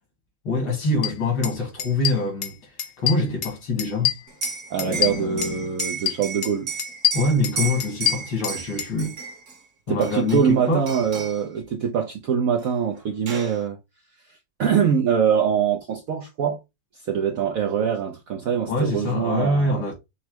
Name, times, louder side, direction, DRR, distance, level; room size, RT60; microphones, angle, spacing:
voice 1, 0.4-2.7 3.0-4.1 4.8-5.8 7.1-9.2 9.9-10.9 18.7-19.9, left 2 dB, 75° left, 2.7 m, -25 dB
sound 1, 1.0-1.1 1.4-1.5 1.8-2.5 2.8-3.5 3.8-5.5 5.8-6.5 6.8-8.9, left 11 dB, 60° left, 1.2 m, -25 dB
Liquid, 4.3-9.6 10.0-10.6 10.9-11.4 12.6-12.7 13.0-13.6, right 5 dB, 45° right, 1.2 m, -33 dB
voice 2, 4.7-6.7 9.9-13.8 14.6-16.6 17.1-19.8, right 7 dB, 70° right, 0.8 m, -23 dB
5.8 x 2.1 x 4.5 m
omnidirectional pair, 2.1 m